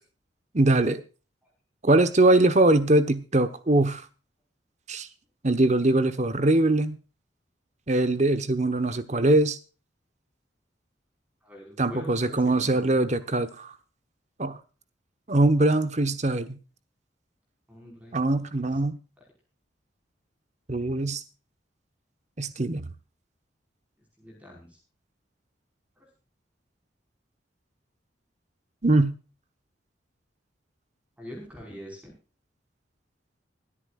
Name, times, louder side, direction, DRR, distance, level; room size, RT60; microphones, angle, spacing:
voice 1, 0.5-1.0 1.8-4.0 4.9-5.1 5.4-7.0 7.9-9.6 11.8-13.7 14.4-14.6 15.3-16.6 18.1-19.0 20.7-21.2 22.4-22.8 28.8-29.1, right 2 dB, 40° right, 1.1 m, -22 dB
voice 2, 11.4-13.3 17.7-18.6 24.2-24.8 26.0-26.1 31.2-32.1, equal, 10° right, 4.9 m, -44 dB
24.5 x 8.8 x 2.4 m
head